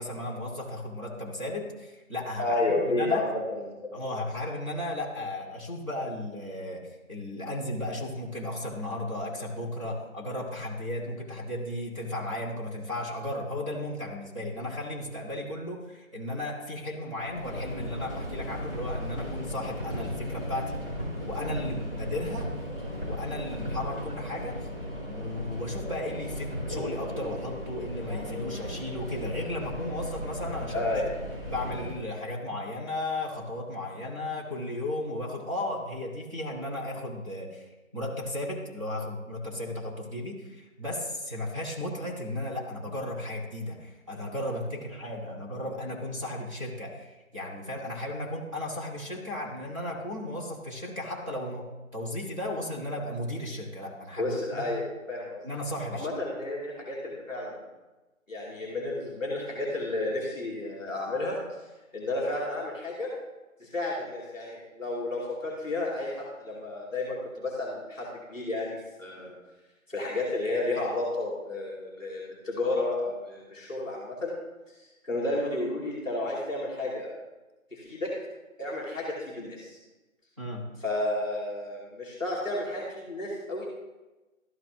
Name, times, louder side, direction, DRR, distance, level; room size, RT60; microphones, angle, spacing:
voice 1, 0.0-2.6 2.8-3.2 3.9-20.8 21.2-22.5 23.0-24.7 25.0-30.9 31.5-51.7 51.9-54.6 55.4-56.1 80.4-80.7, left 1 dB, 25° right, -5 dB, 1.3 m, -35 dB
voice 2, 2.4-3.7 30.7-31.0 54.2-55.4 55.9-57.5 58.3-61.4 61.9-63.1 63.6-69.3 69.9-74.3 75.0-77.1 77.7-78.1 78.6-79.8 80.8-83.7, left 2 dB, 5° right, -14 dB, 1.4 m, -31 dB
Subway metro underground, 17.3-32.1, equal, 40° right, 2.5 m, -36 dB
13.0 x 4.4 x 3.0 m, 1.1 s
figure-of-eight pair, 165°, 41 cm